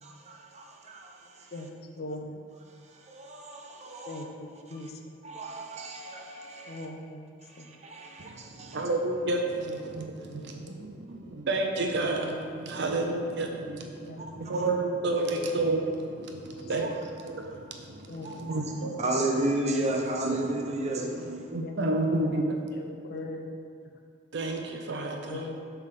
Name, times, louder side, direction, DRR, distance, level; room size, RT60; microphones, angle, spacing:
voice 1, 0.0-1.7 2.7-4.2 4.7-4.9 5.2-6.9 7.4-8.8 14.2-14.3 14.5-14.6 16.8-16.9 18.5-18.7 19.0-21.3, right 1 dB, 35° right, 1 dB, 0.8 m, -33 dB
voice 2, 2.0-2.4 4.1-4.9 6.7-7.2 9.6-10.1 12.2-12.4 13.8-14.4 15.3-15.5 16.3-16.4 18.1-18.3 18.8-18.9 20.8-21.0 21.5-22.5 22.8-23.5 25.2-25.5, left 2 dB, 55° left, 3 dB, 0.7 m, -40 dB
voice 3, 8.2-10.6 11.1-11.2 11.5-19.0 19.6-20.7 21.3-22.6 23.1-23.2 24.3-25.5, right 2 dB, 65° right, 2 dB, 0.6 m, -31 dB
7.2 x 3.4 x 5.9 m, 2.2 s
head